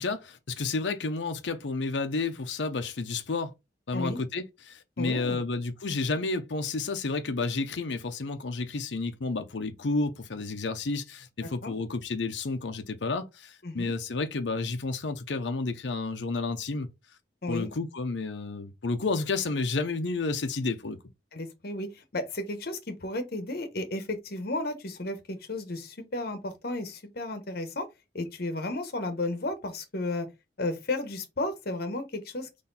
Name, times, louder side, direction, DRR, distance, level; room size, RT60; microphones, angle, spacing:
voice 1, 0.0-3.5 3.9-16.9 17.5-21.0, left 3 dB, 80° left, 0.7 m, -31 dB
voice 2, 5.0-5.4 11.4-11.7 13.6-13.9 17.4-17.7 21.3-27.9 28.1-30.3 30.6-32.5, left 2 dB, 60° left, 1.1 m, -33 dB
4.2 x 3.2 x 3.9 m
head